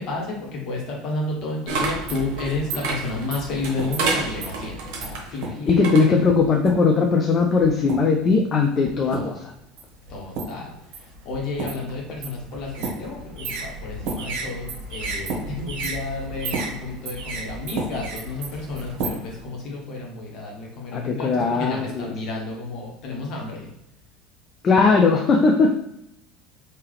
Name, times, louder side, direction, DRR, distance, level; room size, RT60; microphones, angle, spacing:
voice 1, 0.0-6.0 9.1-9.3 10.1-10.7 11.2-23.7, left 2 dB, 50° left, -2 dB, 1.4 m, -31 dB
sound 1, 1.7-7.0 7.6-8.2 8.8-9.4 9.8-19.4, right 3 dB, 60° right, 1.0 m, -31 dB
voice 2, 5.7-9.5 20.9-22.1 24.6-25.7, left 4 dB, 35° left, 2 dB, 0.5 m, -19 dB
3.6 x 2.8 x 3.4 m, 0.82 s
figure-of-eight pair, 70°, 0 cm